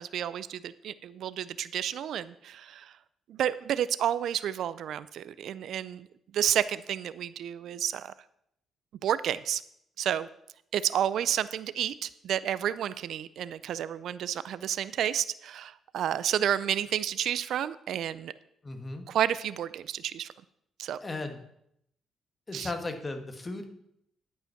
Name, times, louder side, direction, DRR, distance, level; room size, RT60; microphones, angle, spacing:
voice 1, 0.0-2.9 3.3-6.1 6.3-8.1 9.0-9.6 10.0-10.3 10.7-18.3 19.1-20.3 20.8-21.0 22.5-22.7, right 10 dB, 70° right, 16 dB, 0.4 m, -30 dB
voice 2, 18.6-19.0 21.0-21.4 22.5-23.7, left 2 dB, 25° left, 6 dB, 1.6 m, -36 dB
11.5 x 5.5 x 5.7 m, 0.76 s
cardioid pair, 90°, 0 cm